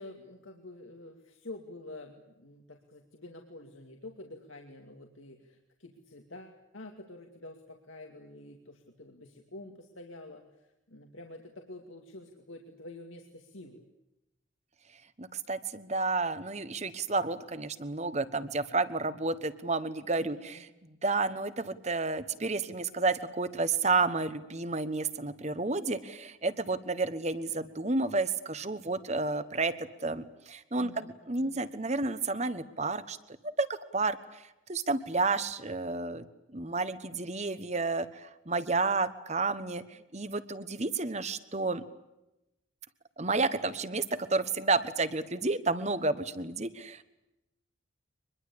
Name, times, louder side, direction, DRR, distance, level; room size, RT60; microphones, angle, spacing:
voice 1, 0.0-13.8 20.2-20.6 30.8-31.5, left 2 dB, 85° left, 3 dB, 2.4 m, -48 dB
voice 2, 15.2-20.7 21.0-33.2 33.6-34.4 34.7-41.8 43.2-44.0 44.3-47.0, right 3 dB, 35° right, 13 dB, 1.2 m, -31 dB
24.0 x 21.5 x 8.6 m, 0.94 s
head